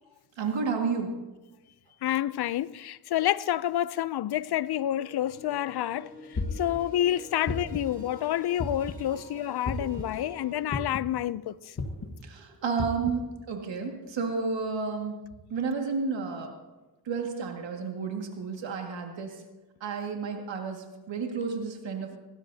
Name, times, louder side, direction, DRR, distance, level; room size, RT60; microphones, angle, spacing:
voice 1, 0.4-1.1 9.8-9.9 12.0-15.2 15.5-16.5 17.1-19.4 19.8-22.2, right 5 dB, 90° right, 2.0 m, -31 dB
voice 2, 2.0-6.1 6.5-11.6, left 12 dB, 60° left, 0.5 m, -28 dB
sound 1, 4.8-10.8, left 2 dB, 20° left, 5.1 m, -47 dB
sound 2, 6.4-6.8 7.5-7.9 8.6-9.0 9.7-10.0 10.7-11.1 11.8-12.1 12.8-13.1, left 3 dB, 35° left, 1.5 m, -32 dB
19.0 x 16.0 x 2.8 m
cardioid pair, 75°, 43 cm